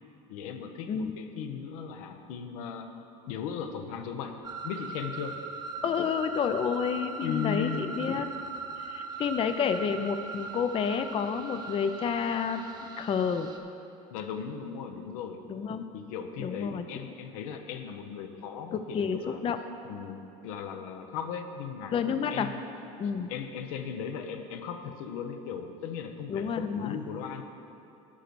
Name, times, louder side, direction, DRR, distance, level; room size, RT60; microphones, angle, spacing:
voice 1, 0.3-2.9 3.3-5.4 7.2-7.9 9.1-9.2 14.1-15.4 15.9-19.4 19.8-22.0 22.3-22.7 23.3-27.4, left 7 dB, 80° left, 6 dB, 0.7 m, -37 dB
sound 1, 4.4-13.6, right 4 dB, 25° right, 0.8 m, -40 dB
voice 2, 5.8-8.3 8.8-13.5 15.5-15.9 16.4-16.8 18.7-19.6 21.9-22.5 23.0-23.3 26.3-27.0, left 6 dB, 30° left, 9 dB, 0.4 m, -30 dB
11.0 x 3.9 x 6.8 m, 2.7 s
supercardioid pair, 90°, 18 cm